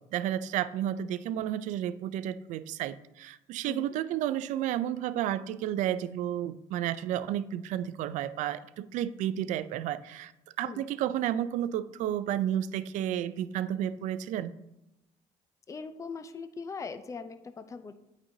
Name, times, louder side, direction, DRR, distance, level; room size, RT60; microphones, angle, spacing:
voice 1, 0.0-10.3 10.6-14.5, right 11 dB, 70° right, 14 dB, 0.4 m, -32 dB
voice 2, 15.7-17.9, left 4 dB, 25° left, 10 dB, 0.5 m, -40 dB
8.8 x 5.3 x 2.7 m, 0.91 s
cardioid pair, 90°, 13 cm